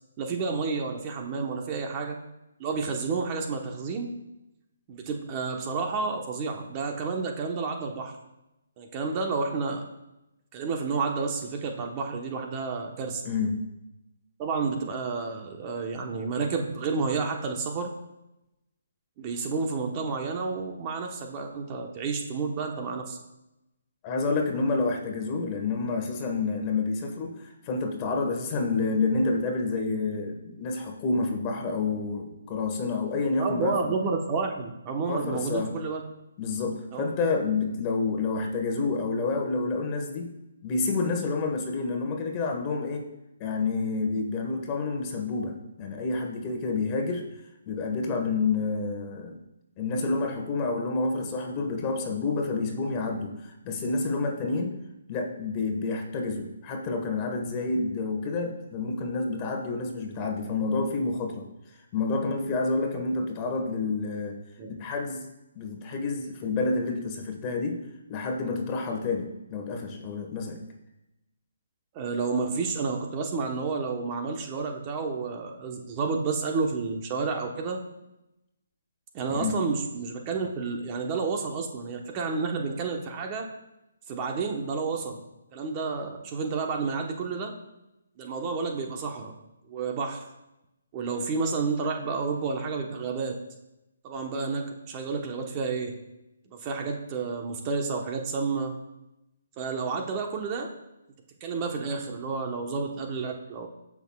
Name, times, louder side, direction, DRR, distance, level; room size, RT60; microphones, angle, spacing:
voice 1, 0.2-2.2 2.6-4.1 4.9-8.1 8.8-9.8 10.5-13.2 14.4-17.9 19.2-23.2 33.4-36.0 36.9-37.1 64.6-64.7 71.9-77.8 79.1-83.5 84.1-85.2 85.5-87.5 88.2-89.3 89.7-90.3 90.9-93.4 94.0-95.9 96.5-98.7 99.6-100.7 101.4-103.7, right 4 dB, 25° right, 2 dB, 1.1 m, -30 dB
voice 2, 13.2-13.6 24.0-33.9 35.1-35.8 36.4-40.3 40.6-43.1 43.4-47.2 47.6-49.4 49.8-54.8 55.1-61.5 61.9-64.4 64.8-65.2 65.5-67.8 68.1-70.6 79.3-79.5, left 3 dB, 25° left, 3 dB, 1.5 m, -29 dB
17.5 x 6.0 x 2.4 m, 0.92 s
hypercardioid pair, 145°, 0 cm